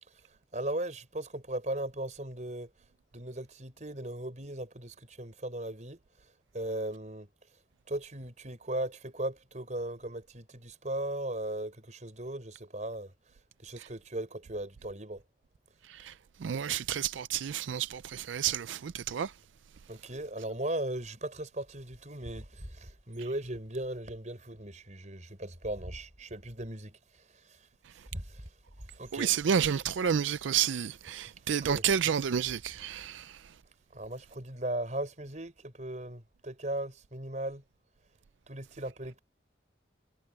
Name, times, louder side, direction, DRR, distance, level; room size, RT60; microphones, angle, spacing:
voice 1, 0.5-2.7 3.1-6.0 6.5-7.3 7.9-13.1 13.6-15.2 19.9-27.0 28.1-28.4 29.0-29.3 31.6-31.8 33.9-37.6 38.5-39.2, right 1 dB, 40° right, 5.5 m, -37 dB
voice 2, 16.4-19.3 29.1-33.4, right 8 dB, 85° right, 0.4 m, -30 dB
head